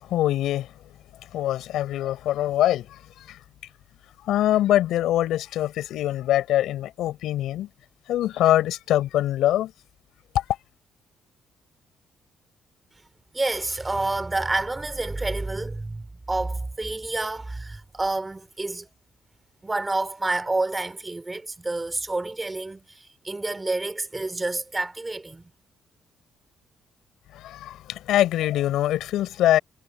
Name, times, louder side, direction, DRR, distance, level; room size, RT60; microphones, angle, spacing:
voice 1, 0.0-0.7 1.3-3.4 4.2-7.7 8.1-9.7 10.3-10.6 27.3-29.6, left 13 dB, 85° left, 5.8 m, -23 dB
voice 2, 13.3-18.9 19.6-25.5, right 2 dB, 20° right, 2.8 m, -29 dB
cardioid pair, 90°, 0 cm